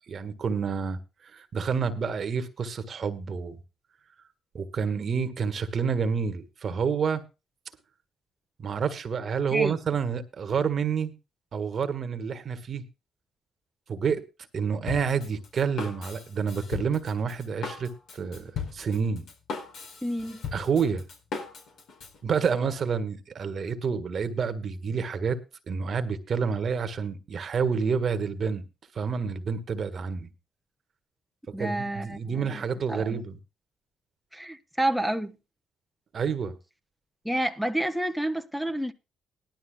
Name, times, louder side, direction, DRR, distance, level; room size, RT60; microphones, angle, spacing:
voice 1, 0.1-1.0 1.3-3.6 4.5-7.2 8.6-11.1 11.5-12.8 13.9-14.2 14.5-19.3 20.5-21.0 22.2-25.4 25.7-28.6 28.9-30.3 31.6-33.4 36.1-36.6, right 6 dB, 50° right, 1.6 m, -28 dB
Drum kit, 14.9-22.2, left 5 dB, 75° left, 4.4 m, -38 dB
voice 2, 20.0-20.4 31.5-32.6 32.9-33.2 34.3-35.4 37.2-38.9, right 1 dB, ahead, 1.0 m, -29 dB
18.5 x 12.0 x 2.3 m
cardioid pair, 90°, 0 cm